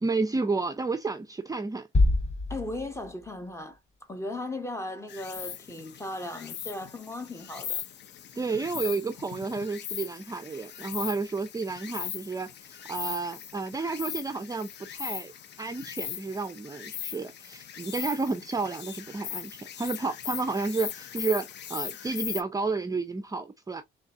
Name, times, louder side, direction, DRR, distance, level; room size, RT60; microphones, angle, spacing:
voice 1, 0.0-1.9 8.4-15.3 15.6-23.8, right 3 dB, 15° right, 0.5 m, -31 dB
sound 1, 1.9-3.8, left 2 dB, 35° left, 0.9 m, -26 dB
voice 2, 2.5-3.8 4.1-7.8, left 2 dB, 15° left, 1.1 m, -37 dB
Insect, 5.1-22.4, left 9 dB, 60° left, 0.6 m, -39 dB
3.8 x 3.4 x 2.4 m
cardioid pair, 90°, 20 cm